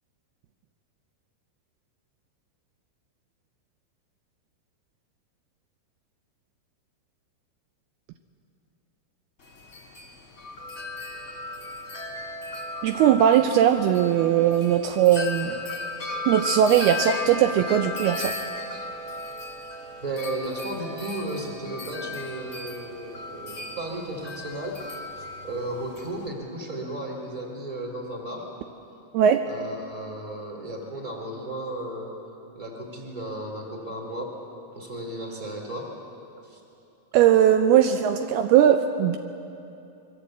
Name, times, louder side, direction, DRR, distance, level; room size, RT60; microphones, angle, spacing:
Wind chime, 9.4-26.3, left 2 dB, 25° left, 2.3 m, -36 dB
voice 1, 12.8-15.6 16.3-18.3 29.1-29.5 37.1-39.2, right 10 dB, 80° right, 7 dB, 2.6 m, -19 dB
voice 2, 20.0-24.8 25.4-28.5 29.4-32.1 32.5-34.3 34.7-35.9 36.5-36.6, right 1 dB, 10° right, 1 dB, 3.4 m, -34 dB
26.0 x 23.0 x 8.2 m, 2.8 s
omnidirectional pair, 4.8 m